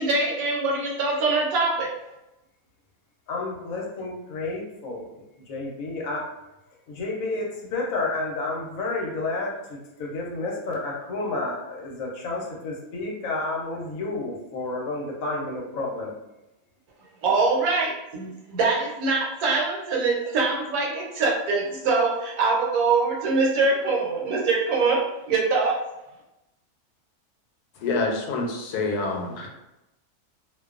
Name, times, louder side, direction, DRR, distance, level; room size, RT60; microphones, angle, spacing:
voice 1, 0.0-1.9 17.2-25.0 25.3-25.8, right 3 dB, 75° right, -2 dB, 1.1 m, -23 dB
voice 2, 3.3-5.1 5.5-6.3 6.9-16.2, left 2 dB, 70° left, -2 dB, 1.0 m, -30 dB
voice 3, 27.8-29.5, left 3 dB, 90° left, 1 dB, 1.1 m, -27 dB
2.5 x 2.2 x 2.3 m, 0.94 s
omnidirectional pair, 1.6 m